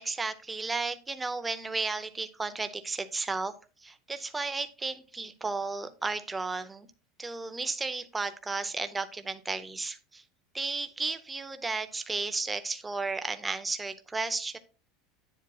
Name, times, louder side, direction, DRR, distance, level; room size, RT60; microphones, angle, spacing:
voice 1, 0.0-3.5 3.8-6.9 7.2-10.2 10.5-14.6, right 3 dB, 10° right, 10 dB, 0.6 m, -33 dB
9.7 x 7.4 x 2.3 m, 0.33 s
supercardioid pair, 160°, 0 cm